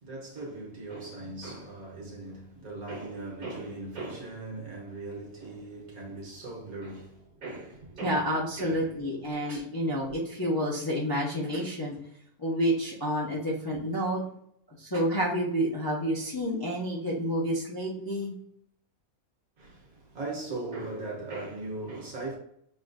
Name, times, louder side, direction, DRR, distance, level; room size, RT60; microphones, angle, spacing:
voice 1, 0.0-8.9 19.6-22.4, right 2 dB, 80° right, 1.6 m, -39 dB
voice 2, 8.0-12.0 12.4-14.2 14.7-18.3, equal, 20° left, 0.6 m, -29 dB
6.7 x 2.5 x 2.3 m
omnidirectional pair, 1.5 m